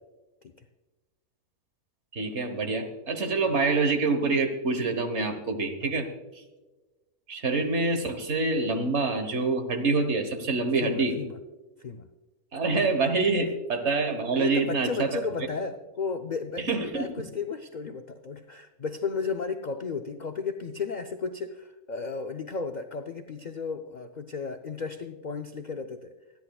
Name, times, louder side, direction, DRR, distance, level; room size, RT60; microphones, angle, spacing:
voice 1, 2.1-6.1 7.3-11.2 12.5-15.2 16.6-17.1, right 3 dB, 50° right, 7 dB, 1.5 m, -26 dB
voice 2, 10.8-11.4 11.8-12.1 14.3-26.1, left 5 dB, 70° left, 6 dB, 0.4 m, -34 dB
25.0 x 10.5 x 2.4 m, 1.2 s
omnidirectional pair, 1.5 m